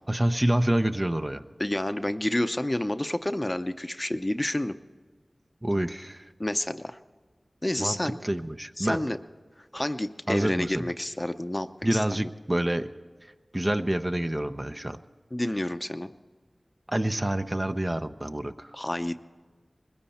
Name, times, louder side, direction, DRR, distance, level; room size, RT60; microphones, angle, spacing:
voice 1, 0.1-1.4 5.6-6.3 7.8-9.0 9.7-9.9 10.3-10.8 11.8-12.9 13.5-15.0 16.9-18.7, right 1 dB, 30° right, 8 dB, 0.7 m, -27 dB
voice 2, 1.6-4.7 6.4-7.0 7.6-8.2 8.8-9.2 9.7-12.2 15.3-16.1 18.7-19.2, left 1 dB, 25° left, 10 dB, 0.7 m, -29 dB
20.5 x 15.5 x 4.3 m, 1.4 s
wide cardioid pair, 40°, 0 cm